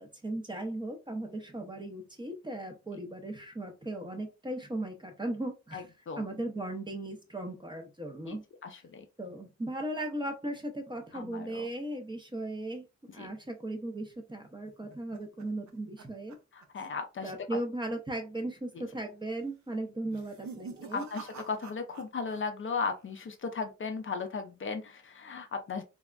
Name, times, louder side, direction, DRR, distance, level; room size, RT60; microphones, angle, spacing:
voice 1, 0.0-5.9 6.2-8.4 9.2-12.8 13.1-16.4 17.2-21.1, right 1 dB, 15° right, 0.6 m, -37 dB
voice 2, 5.7-6.2 8.3-8.4 8.6-9.0 11.1-11.6 13.2-13.3 16.7-17.3 20.9-25.8, left 5 dB, 45° left, 0.5 m, -36 dB
sound 1, 14.4-16.9 17.2-17.6 17.9-18.0 18.7-19.1 20.0-22.4 22.7-23.3, right 5 dB, 65° right, 0.5 m, -48 dB
3.4 x 2.0 x 2.3 m
wide cardioid pair, 110°, 30 cm